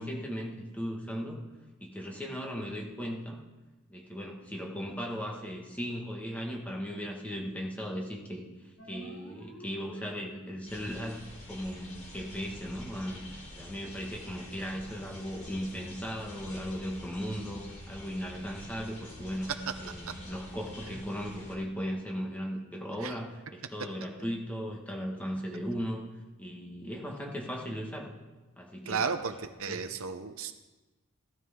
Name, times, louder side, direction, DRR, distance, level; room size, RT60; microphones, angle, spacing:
voice 1, 0.0-1.4 1.8-3.4 3.9-8.4 8.9-11.2 11.5-19.5 19.8-26.1 26.4-28.1 28.6-29.1 29.7-29.9, equal, 5° left, -1 dB, 1.8 m, -37 dB
sound 1, 8.8-10.8, equal, 70° left, 3.1 m, -48 dB
sound 2, 10.7-21.5, left 1 dB, 35° left, 4.1 m, -47 dB
voice 2, 28.9-30.5, right 5 dB, 70° right, 9 dB, 0.8 m, -33 dB
16.0 x 12.5 x 3.8 m, 1.2 s
head